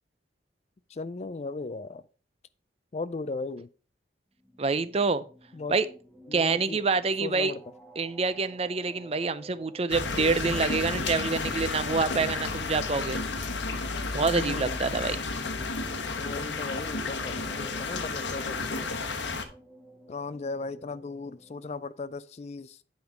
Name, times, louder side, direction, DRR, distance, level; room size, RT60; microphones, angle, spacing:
voice 1, 0.9-2.0 2.9-3.7 5.5-5.7 6.3-6.8 7.2-7.6 14.2-14.9 16.2-18.9 20.1-22.8, left 3 dB, 40° left, 0.4 m, -37 dB
sound 1, 4.3-21.7, right 2 dB, 5° right, 1.2 m, -53 dB
voice 2, 4.6-5.2 5.7-5.9 6.3-7.5 8.0-13.2 14.1-15.2, right 4 dB, 35° right, 0.5 m, -27 dB
sound 2, 9.9-19.4, left 3 dB, 90° left, 1.2 m, -32 dB
9.4 x 5.2 x 4.6 m
head